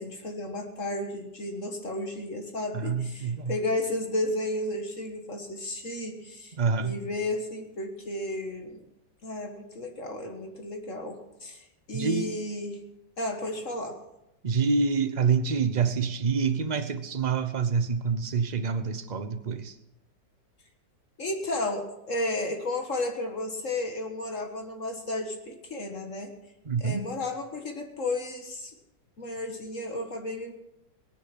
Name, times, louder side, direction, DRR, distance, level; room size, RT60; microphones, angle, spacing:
voice 1, 0.0-8.8 9.2-12.8 13.2-14.0 21.2-26.3 26.8-28.7 29.2-30.5, left 1 dB, 45° left, 1.8 m, -33 dB
voice 2, 2.7-3.6 6.6-7.0 11.9-12.3 14.4-19.7 26.6-27.0, right 5 dB, 35° right, 0.7 m, -27 dB
18.0 x 10.5 x 5.9 m
omnidirectional pair, 1.9 m